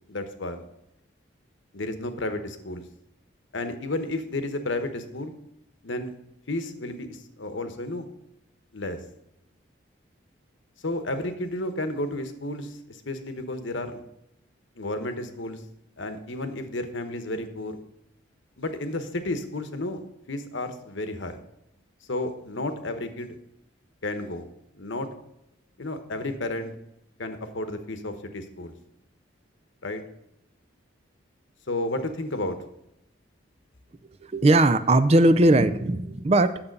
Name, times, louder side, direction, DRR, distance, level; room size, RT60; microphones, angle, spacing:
voice 1, 0.1-0.6 1.7-2.8 3.5-5.3 5.8-6.1 6.5-8.1 8.7-9.0 10.8-14.0 14.8-15.6 16.0-17.8 18.6-20.0 20.3-21.4 22.1-23.4 24.0-24.4 24.7-25.1 25.8-26.7 27.2-28.7 29.8-30.0 31.7-32.6, left 2 dB, 75° left, 8 dB, 1.1 m, -32 dB
voice 2, 34.2-36.6, right 2 dB, 30° right, 12 dB, 0.4 m, -19 dB
9.0 x 7.0 x 5.3 m, 0.84 s
head